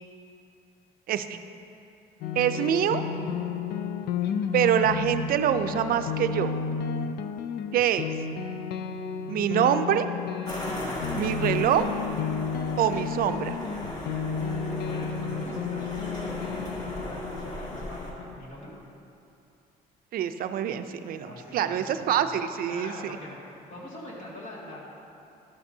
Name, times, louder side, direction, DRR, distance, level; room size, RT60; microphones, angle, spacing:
voice 1, 1.1-1.4 2.4-3.0 4.5-6.5 7.7-8.0 9.3-10.1 11.1-11.9 12.8-13.6 20.1-23.2, right 10 dB, 60° right, 10 dB, 0.5 m, -25 dB
sound 1, 2.2-18.4, left 6 dB, 70° left, 0.4 m, -32 dB
sound 2, 10.5-18.1, equal, 25° left, 1.6 m, -37 dB
voice 2, 14.8-18.7 21.2-21.8 22.2-22.4 22.7-24.8, left 1 dB, 45° left, -5 dB, 2.1 m, -43 dB
12.0 x 8.5 x 2.7 m, 2.7 s
cardioid pair, 110°, 17 cm